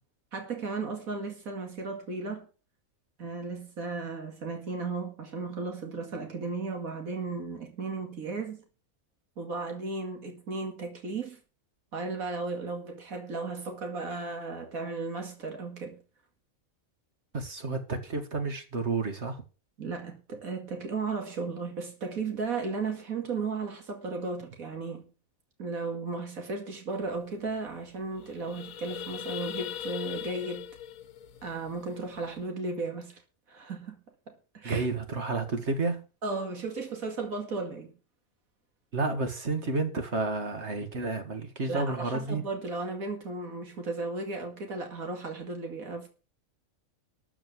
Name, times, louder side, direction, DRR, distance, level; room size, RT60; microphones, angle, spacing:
voice 1, 0.3-2.5 3.2-8.6 9.4-11.4 11.9-16.0 19.8-25.1 25.6-30.7 31.4-33.2 33.5-34.0 34.3-34.9 36.2-37.9 41.7-46.1, right 3 dB, 90° right, 2.6 m, -35 dB
voice 2, 17.3-19.4 34.6-36.1 38.9-42.4, right 3 dB, 55° right, 2.2 m, -31 dB
sound 1, 27.1-27.2 27.5-27.7 28.1-32.4, left 10 dB, 80° left, 1.2 m, -40 dB
13.5 x 5.2 x 8.1 m
omnidirectional pair, 1.4 m